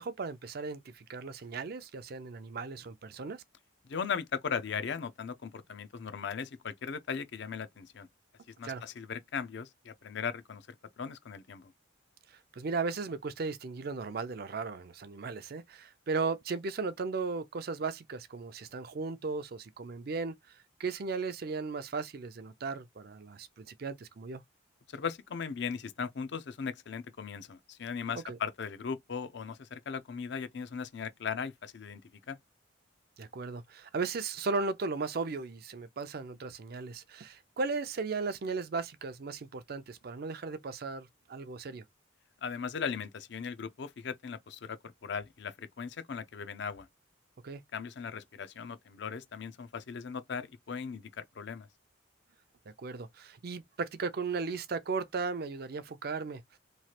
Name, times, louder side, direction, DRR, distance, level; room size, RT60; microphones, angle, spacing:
voice 1, 0.0-3.4 8.6-8.8 12.3-24.4 28.3-28.4 33.2-41.8 47.4-47.6 52.8-56.6, right 4 dB, 50° right, 0.4 m, -36 dB
voice 2, 3.8-8.1 8.5-10.7 11.0-11.7 24.9-32.0 32.3-32.4 42.4-46.9 47.7-51.7, left 6 dB, 60° left, 0.5 m, -38 dB
3.1 x 2.4 x 2.8 m
head